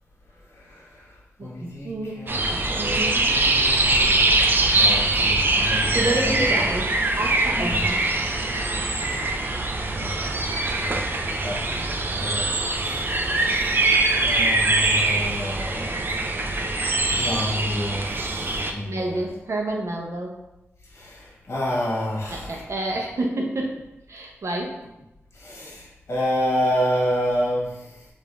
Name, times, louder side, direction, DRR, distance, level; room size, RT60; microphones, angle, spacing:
voice 1, 0.5-6.7 7.5-7.9 9.9-10.3 10.8-11.1 11.4-11.7 12.1-12.5 12.8-13.1 14.2-16.0 17.1-19.2 20.9-22.6 25.3-28.1, equal, 60° left, -4 dB, 1.3 m, -29 dB
voice 2, 1.4-3.3 5.9-6.9 7.2-8.0 18.8-20.3 22.3-23.8 24.1-24.7, right 2 dB, 70° right, 0 dB, 0.8 m, -29 dB
sound 1, 2.3-18.7, right 2 dB, 45° right, 0.5 m, -23 dB
5.1 x 2.7 x 3.4 m, 0.93 s
wide cardioid pair, 95°, 5 cm